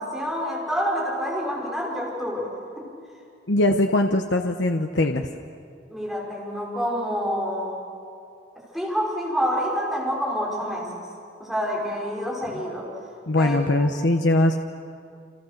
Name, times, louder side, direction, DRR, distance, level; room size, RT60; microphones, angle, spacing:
voice 1, 0.0-2.5 2.8-2.9 5.9-7.8 8.7-10.9 11.4-12.9 13.4-13.9, equal, ahead, -3 dB, 5.2 m, -27 dB
voice 2, 3.5-5.3 13.3-14.6, left 1 dB, 70° left, 5 dB, 1.1 m, -21 dB
29.0 x 28.0 x 6.7 m, 2.4 s
head